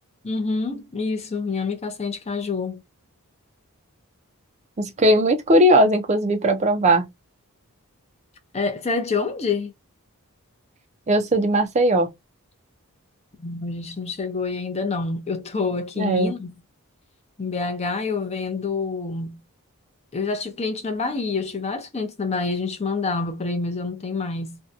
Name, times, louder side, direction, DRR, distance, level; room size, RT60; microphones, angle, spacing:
voice 1, 0.2-2.8 8.5-9.7 13.4-16.6 17.4-19.4 20.1-24.6, left 4 dB, 30° left, 0.5 m, -27 dB
voice 2, 4.8-7.1 11.1-12.1 16.0-16.3, right 1 dB, 30° right, 0.4 m, -18 dB
2.6 x 2.2 x 2.5 m
head